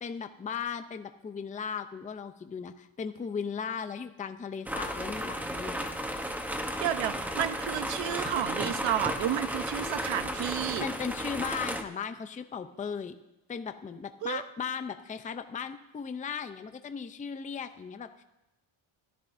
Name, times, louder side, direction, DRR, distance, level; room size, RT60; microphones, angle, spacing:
voice 1, 0.0-5.9 10.8-13.2 13.5-18.2, left 6 dB, 15° left, 9 dB, 0.5 m, -37 dB
sound 1, 4.7-11.8, equal, 5° right, 0.8 m, -34 dB
voice 2, 6.8-10.9 14.2-14.4, right 11 dB, 60° right, 11 dB, 0.8 m, -31 dB
25.0 x 13.5 x 2.6 m, 0.94 s
cardioid pair, 145°, 49 cm